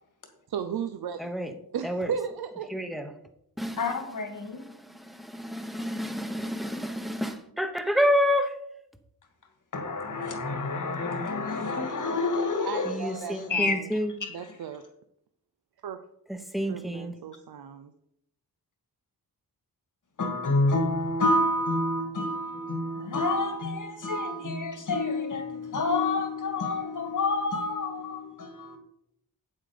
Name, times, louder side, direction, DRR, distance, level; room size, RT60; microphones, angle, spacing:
voice 1, 0.5-1.3 1.7-2.7 12.7-13.9 14.3-14.8 15.8-16.0 16.7-17.9, right 8 dB, 80° right, 0.7 m, -35 dB
voice 2, 1.2-1.5 1.8-2.1 2.7-3.1 3.6-3.8 4.8-4.9 5.8-8.6 12.8-14.1 16.3-17.1, equal, ahead, 0.9 m, -28 dB
voice 3, 3.8-4.6 9.7-14.6 20.2-28.8, left 2 dB, 55° left, 1.9 m, -29 dB
8.5 x 7.6 x 5.0 m
wide cardioid pair, 130°, 37 cm